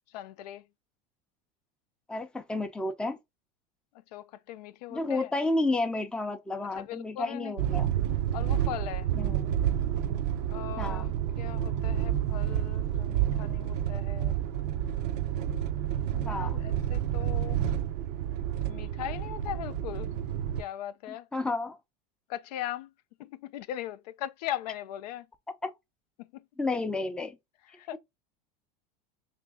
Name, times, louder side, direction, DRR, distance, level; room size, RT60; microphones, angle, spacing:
voice 1, 0.1-0.6 4.1-5.3 6.8-7.5 8.3-9.1 10.5-14.3 16.1-17.6 18.7-20.2 20.6-21.3 22.3-22.9 23.2-25.3 26.2-26.3 27.8-28.0, left 12 dB, 75° left, 0.4 m, -39 dB
voice 2, 2.1-3.2 4.9-7.9 9.2-9.5 10.8-11.1 16.3-16.6 21.1-21.8 25.6-25.7 26.6-27.4, left 2 dB, 5° left, 0.4 m, -31 dB
sound 1, 7.6-20.6, right 10 dB, 75° right, 0.5 m, -29 dB
3.0 x 2.5 x 3.4 m
hypercardioid pair, 105°, 21 cm